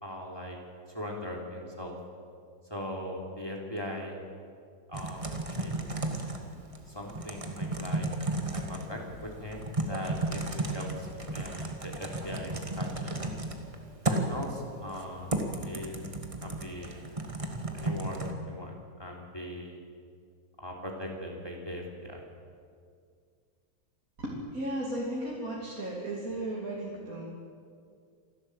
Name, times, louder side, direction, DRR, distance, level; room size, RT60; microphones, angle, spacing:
voice 1, 0.0-0.6 0.9-2.0 2.7-4.1 4.9-5.3 5.5-5.7 6.9-8.1 8.7-13.3 14.1-15.3 15.6-16.0 16.4-17.0 17.7-18.7 19.0-19.8 20.6-22.2, equal, 15° left, -1 dB, 3.2 m, -40 dB
Typing, 4.9-18.3, right 2 dB, 20° right, 1.7 m, -34 dB
voice 2, 24.2-27.2, right 1 dB, 45° right, -5 dB, 3.2 m, -35 dB
28.0 x 12.5 x 8.1 m, 2.2 s
omnidirectional pair, 2.0 m